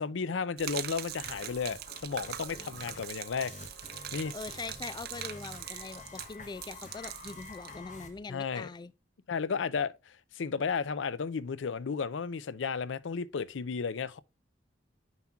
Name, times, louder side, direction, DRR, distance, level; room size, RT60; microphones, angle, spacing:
voice 1, 0.0-3.5 4.1-4.3 8.3-8.7 9.3-14.2, left 5 dB, 80° left, 0.5 m, -33 dB
Gurgling / Liquid, 0.6-8.2, right 11 dB, 55° right, 0.6 m, -42 dB
sound 1, 1.2-8.1, left 3 dB, 40° left, 1.3 m, -49 dB
voice 2, 4.1-8.9, left 4 dB, 25° left, 0.3 m, -42 dB
9.5 x 5.8 x 2.3 m
head